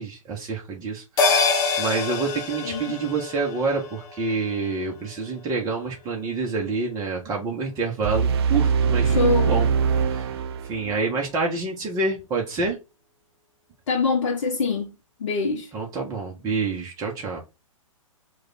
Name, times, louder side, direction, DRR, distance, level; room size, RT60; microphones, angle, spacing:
voice 1, 0.0-1.4 1.8-12.8 15.7-17.4, right 4 dB, 20° right, 0.8 m, -28 dB
sound 1, 1.2-5.9 6.2-6.3, left 4 dB, 20° left, 0.8 m, -27 dB
sound 2, 8.0-11.1, right 6 dB, 45° right, 0.4 m, -22 dB
voice 2, 9.0-9.6 13.9-14.9 15.2-15.7, left 3 dB, 60° left, 0.7 m, -24 dB
3.1 x 2.3 x 3.9 m
figure-of-eight pair, 120°, 18 cm